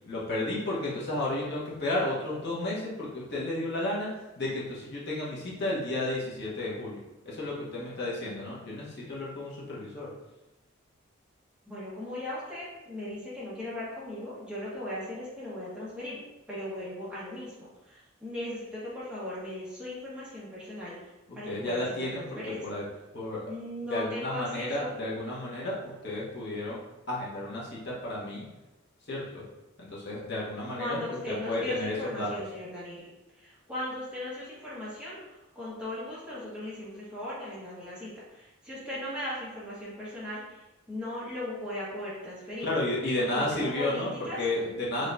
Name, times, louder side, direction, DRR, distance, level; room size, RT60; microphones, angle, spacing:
voice 1, 0.1-4.1 4.4-7.0 7.2-10.1 21.3-22.8 23.1-23.4 23.9-28.5 29.1-29.4 29.8-31.0 31.3-32.3 42.6-45.1, left 1 dB, 55° left, -6 dB, 1.2 m, -32 dB
voice 2, 11.6-16.2 16.5-22.6 23.4-24.9 30.8-33.0 33.4-40.6 40.9-42.7 43.2-44.4 45.0-45.1, left 1 dB, 5° right, -9 dB, 1.4 m, -38 dB
5.0 x 3.1 x 2.6 m, 1.0 s
head